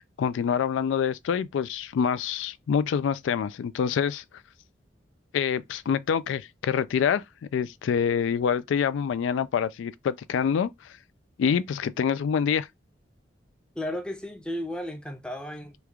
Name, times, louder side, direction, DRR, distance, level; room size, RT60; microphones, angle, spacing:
voice 1, 0.0-4.2 5.3-7.2 7.5-10.7 11.4-12.7, left 7 dB, 85° left, 0.3 m, -26 dB
voice 2, 13.8-15.8, left 1 dB, 5° left, 0.4 m, -34 dB
3.1 x 2.4 x 3.4 m
head